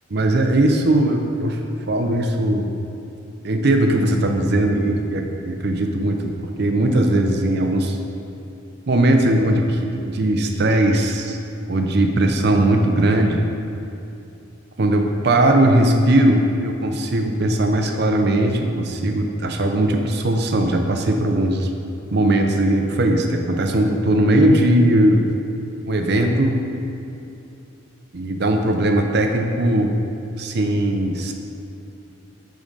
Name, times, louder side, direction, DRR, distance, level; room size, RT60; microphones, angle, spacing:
voice 1, 0.1-1.6 1.9-2.7 3.4-6.3 6.6-8.0 8.9-11.4 11.7-13.4 14.8-21.7 22.1-25.3 25.9-26.6 28.1-30.0 30.4-31.3, right 1 dB, 50° right, 4 dB, 0.6 m, -19 dB
8.3 x 3.8 x 5.3 m, 2.6 s
head